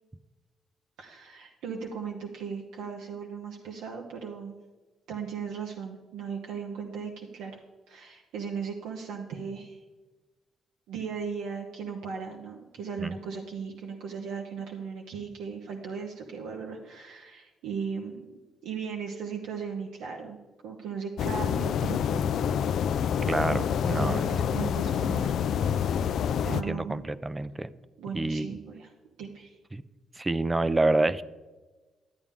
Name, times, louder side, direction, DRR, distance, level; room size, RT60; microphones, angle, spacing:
voice 1, 1.0-4.5 5.1-7.6 7.9-9.8 10.9-18.2 18.6-20.4 20.6-22.3 23.5-23.6 23.9-25.3 25.7-26.2 26.5-27.1 28.0-28.9 29.2-29.6, right 6 dB, 90° right, 0 dB, 1.0 m, -37 dB
sound 1, 21.2-26.6, left 8 dB, 70° left, 0.3 m, -27 dB
voice 2, 23.3-24.3 26.5-27.7 28.1-28.5 29.7-29.8 30.2-31.2, right 2 dB, 20° right, 15 dB, 0.5 m, -27 dB
12.0 x 8.4 x 3.6 m, 1.2 s
cardioid pair, 90°, 0 cm